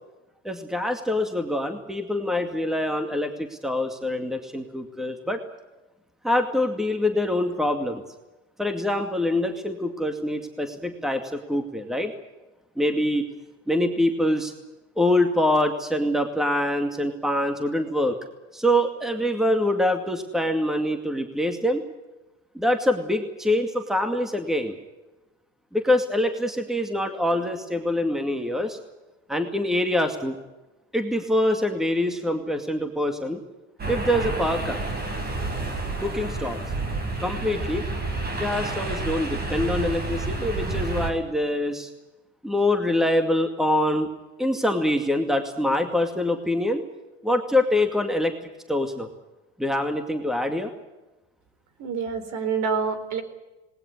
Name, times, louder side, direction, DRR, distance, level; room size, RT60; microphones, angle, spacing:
voice 1, 0.4-5.4 6.2-8.0 8.6-12.1 12.8-13.2 13.7-14.5 15.0-18.2 18.5-21.8 22.5-24.8 25.7-28.8 29.3-30.4 30.9-33.4 33.9-34.8 36.0-36.6 37.2-37.9 38.3-41.9 42.4-44.1 44.4-46.8 47.2-48.3 48.7-49.1 49.6-50.7, left 1 dB, ahead, 6 dB, 2.3 m, -24 dB
sound 1, 33.8-41.1, right 2 dB, 25° right, 5.6 m, -29 dB
voice 2, 51.8-53.2, right 5 dB, 50° right, 12 dB, 4.3 m, -27 dB
20.0 x 19.0 x 10.0 m, 1.1 s
supercardioid pair, 110°, 37 cm